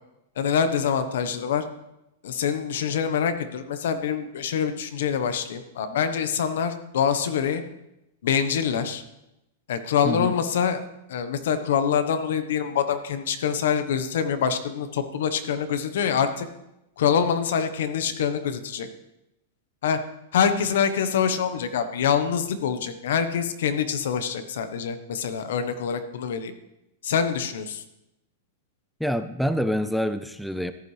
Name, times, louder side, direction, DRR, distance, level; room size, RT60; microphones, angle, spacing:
voice 1, 0.4-1.6 2.2-7.6 8.2-9.0 9.7-10.8 11.1-16.5 17.0-18.9 19.8-20.0 20.3-26.5 27.0-27.8, left 7 dB, 75° left, 10 dB, 1.1 m, -25 dB
voice 2, 10.0-10.4 29.0-30.7, equal, ahead, 10 dB, 0.4 m, -26 dB
14.5 x 11.0 x 3.3 m, 0.88 s
supercardioid pair, 155°, 0 cm